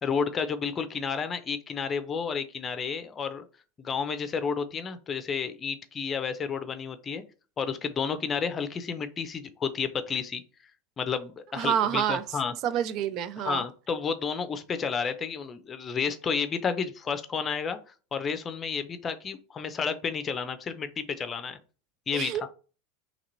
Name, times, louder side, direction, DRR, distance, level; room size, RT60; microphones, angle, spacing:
voice 1, 0.0-3.4 3.8-7.2 7.6-10.4 11.0-12.5 13.4-17.8 18.1-21.6 22.1-22.5, left 6 dB, 30° left, 0.6 m, -31 dB
voice 2, 11.5-12.2 12.6-13.6 22.1-22.5, right 9 dB, 50° right, 0.4 m, -28 dB
3.0 x 2.9 x 3.9 m
hypercardioid pair, 100°, 0 cm